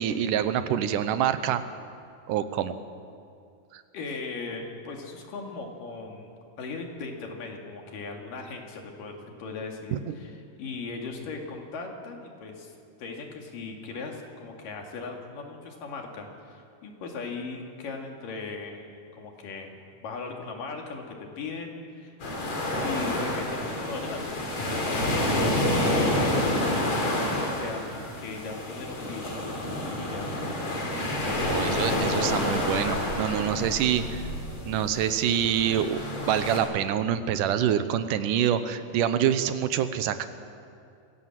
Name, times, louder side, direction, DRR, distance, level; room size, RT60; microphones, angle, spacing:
voice 1, 0.0-1.6 2.3-2.7 3.7-3.8 9.9-10.2 31.4-34.2 34.7-36.0 36.3-40.3, right 9 dB, 75° right, 11 dB, 2.4 m, -26 dB
voice 2, 3.9-10.3 10.6-22.2 22.8-25.3 25.8-27.0 27.6-29.3 30.0-30.3, left 4 dB, 80° left, 2 dB, 4.0 m, -38 dB
sound 1, 22.2-36.6, left 1 dB, 55° left, 5.0 m, -28 dB
25.0 x 17.5 x 7.5 m, 2.4 s
omnidirectional pair, 3.8 m